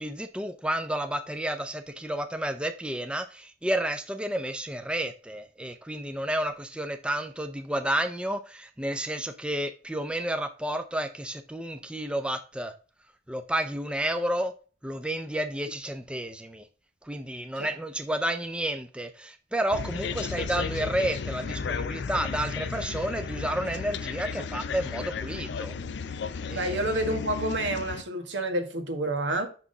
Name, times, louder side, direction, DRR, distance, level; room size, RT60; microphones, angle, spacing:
voice 1, 0.0-12.7 13.3-14.5 14.8-16.6 17.0-25.8 26.5-26.8, right 1 dB, 5° right, 0.5 m, -31 dB
sound 1, 19.7-28.0, left 5 dB, 70° left, 0.5 m, -34 dB
voice 2, 26.5-29.5, right 1 dB, 75° right, 1.6 m, -29 dB
6.1 x 5.9 x 3.8 m
head